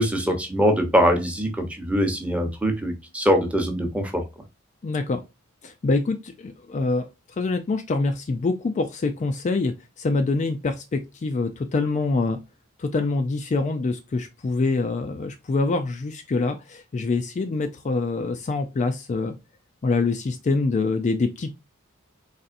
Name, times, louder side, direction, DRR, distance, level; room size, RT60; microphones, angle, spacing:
voice 1, 0.0-4.2, equal, 5° right, 0.8 m, -22 dB
voice 2, 4.8-5.2 5.6-12.4 12.8-19.4 19.8-21.5, left 3 dB, 35° left, 0.3 m, -25 dB
4.0 x 3.3 x 2.5 m
head